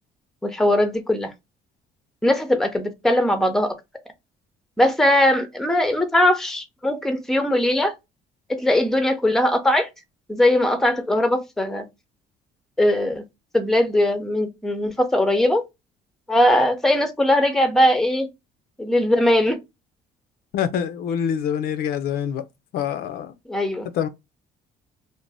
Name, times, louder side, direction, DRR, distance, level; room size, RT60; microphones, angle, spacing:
voice 1, 0.4-1.3 2.2-3.7 4.8-7.9 8.5-9.9 10.3-11.8 12.8-13.2 13.5-15.6 16.3-18.3 18.8-19.6 23.5-23.9, left 1 dB, ahead, 0.5 m, -20 dB
voice 2, 20.5-22.4 22.7-23.4 23.9-24.1, left 8 dB, 65° left, 0.4 m, -25 dB
2.6 x 2.0 x 3.2 m
cardioid pair, 110°, 17 cm